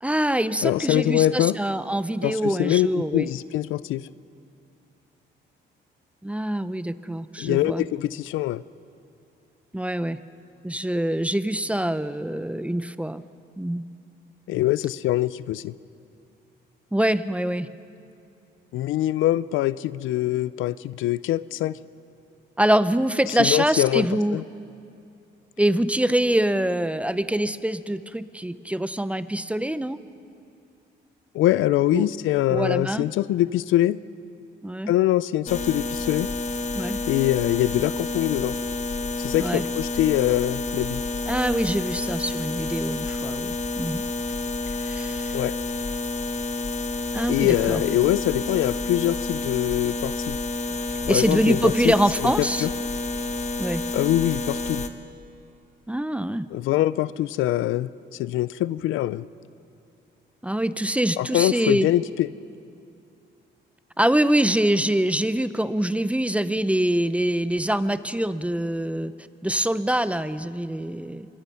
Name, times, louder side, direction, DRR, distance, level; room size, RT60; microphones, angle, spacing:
voice 1, 0.0-3.3 6.2-7.9 9.7-10.2 10.6-13.2 13.6-13.8 16.9-17.7 22.6-24.4 25.6-30.0 31.9-32.1 32.5-33.1 34.6-34.9 36.7-37.0 39.4-39.7 41.3-44.0 44.8-45.4 47.1-47.8 51.1-52.7 53.6-53.8 55.9-56.5 60.4-61.9 64.0-69.1 69.4-71.3, right 1 dB, 5° right, 13 dB, 0.7 m, -24 dB
voice 2, 0.6-1.6 2.2-4.1 7.4-8.6 14.5-15.7 18.7-21.8 23.3-24.1 24.3-24.4 31.3-34.0 34.9-36.3 37.0-38.6 39.2-41.0 45.3-45.5 47.3-50.4 51.1-51.9 52.6-52.7 53.9-54.8 56.5-59.3 61.2-62.3, left 14 dB, 85° left, 18 dB, 0.5 m, -23 dB
sound 1, 35.5-54.9, left 2 dB, 35° left, 1.3 m, -29 dB
25.0 x 22.5 x 5.7 m, 2.6 s
cardioid pair, 90°, 20 cm